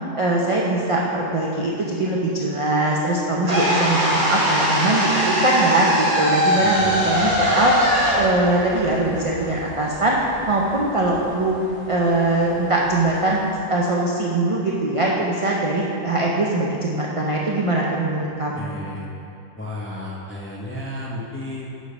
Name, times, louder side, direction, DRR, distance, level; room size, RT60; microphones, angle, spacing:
voice 1, 0.1-7.8 8.1-10.2 10.5-11.6 11.9-13.4 13.7-18.8, right 2 dB, 55° right, -4 dB, 0.3 m, -21 dB
sound 1, 3.4-9.6, equal, 30° right, 1.2 m, -21 dB
voice 2, 6.6-7.4 18.5-19.1 19.6-21.7, left 1 dB, 15° left, -4 dB, 0.4 m, -33 dB
sound 2, 6.7-13.5, equal, 75° right, 1.8 m, -41 dB
6.7 x 4.1 x 4.8 m, 2.6 s
omnidirectional pair, 1.3 m